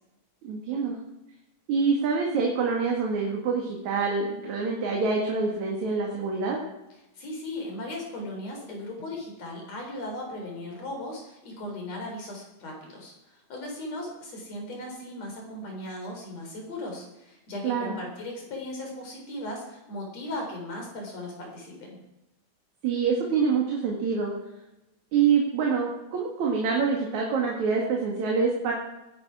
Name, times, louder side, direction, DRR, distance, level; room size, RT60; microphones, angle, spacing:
voice 1, 0.4-1.0 1.7-6.6 17.6-17.9 22.8-24.3 25.1-28.7, right 5 dB, 75° right, -1 dB, 3.4 m, -26 dB
voice 2, 7.1-22.0, left 1 dB, 60° left, 1 dB, 5.1 m, -37 dB
20.0 x 10.5 x 4.9 m, 0.97 s
omnidirectional pair, 3.3 m